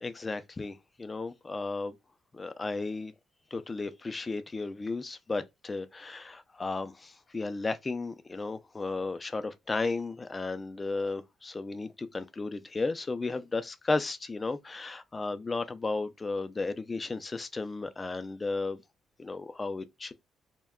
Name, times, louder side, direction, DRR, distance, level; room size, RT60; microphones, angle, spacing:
voice 1, 0.0-1.9 2.3-3.1 3.5-18.8 19.2-20.1, left 3 dB, 25° left, 0.4 m, -34 dB
2.2 x 2.1 x 3.5 m
cardioid pair, 90°, 0 cm